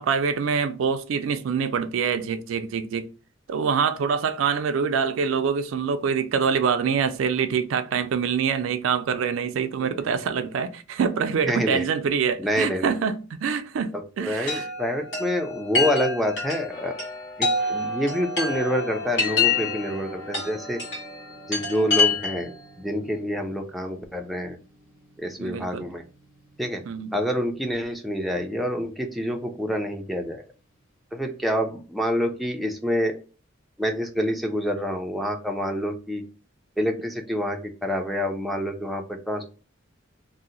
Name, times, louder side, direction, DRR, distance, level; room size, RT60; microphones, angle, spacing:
voice 1, 0.0-3.1 3.5-14.7 25.4-25.9 26.9-27.1, right 6 dB, 70° right, 0.4 m, -25 dB
voice 2, 11.5-11.8 12.4-12.9 14.2-16.9 17.4-20.8 21.5-22.5 22.8-24.6 25.2-26.0 26.6-26.8 27.1-30.4 31.1-33.2 33.8-36.2 36.8-39.4, equal, ahead, 0.4 m, -27 dB
Chime, 14.5-22.6, left 4 dB, 65° left, 1.4 m, -27 dB
sound 1, 16.7-28.2 28.7-28.9, left 3 dB, 50° left, 1.4 m, -42 dB
2.7 x 2.0 x 3.7 m
head